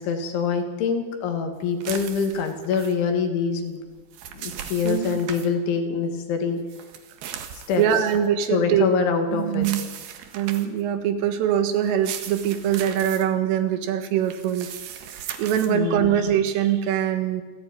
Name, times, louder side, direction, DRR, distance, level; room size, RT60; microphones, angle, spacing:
voice 1, 0.0-3.8 4.3-6.6 7.7-7.8 8.5-9.7 15.7-16.3, left 5 dB, 70° left, 5 dB, 4.6 m, -25 dB
sound 1, 1.8-2.9 3.9-5.5 6.7-8.3 9.5-10.8 11.8-13.2 14.2-15.7, right 9 dB, 65° right, 3.0 m, -37 dB
voice 2, 4.8-5.2 7.8-8.9 9.3-9.8 10.3-14.7 15.4-17.4, right 10 dB, 80° right, 8 dB, 4.2 m, -23 dB
27.5 x 16.0 x 9.3 m, 1.4 s
omnidirectional pair, 5.7 m